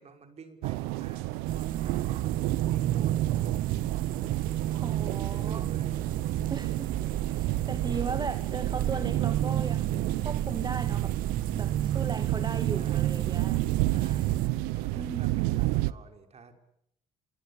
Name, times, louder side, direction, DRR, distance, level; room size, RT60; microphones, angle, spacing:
voice 1, 0.0-2.4 2.7-3.7 4.2-4.4 4.9-6.7 7.8-8.0 12.8-13.2 13.8-14.5 14.7-16.5, right 5 dB, 45° right, 7 dB, 5.6 m, -50 dB
sound 1, 0.6-15.9, right 18 dB, 85° right, 1.0 m, -32 dB
sound 2, 1.5-14.5, right 12 dB, 65° right, 1.3 m, -30 dB
voice 2, 4.7-5.7 6.5-11.1 11.5-13.6 13.9-14.2 14.7-15.7, right 4 dB, 30° right, 8 dB, 2.5 m, -38 dB
26.5 x 24.5 x 8.5 m, 0.74 s
supercardioid pair, 70°, 15 cm